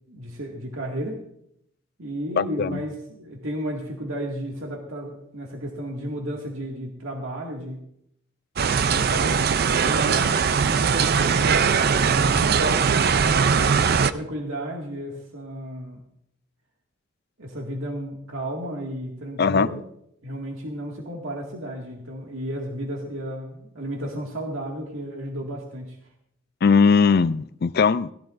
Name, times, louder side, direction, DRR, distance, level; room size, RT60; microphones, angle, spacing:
voice 1, 0.1-1.2 2.0-7.8 8.7-9.5 9.8-13.1 13.7-16.0 17.4-19.8 20.2-26.0, right 1 dB, 80° right, 0 dB, 2.1 m, -33 dB
voice 2, 2.4-2.8 19.4-19.7 26.6-28.1, left 5 dB, 50° left, 16 dB, 0.4 m, -19 dB
sound 1, 8.6-14.1, right 6 dB, 50° right, 0.4 m, -20 dB
17.0 x 15.5 x 2.6 m, 0.74 s
head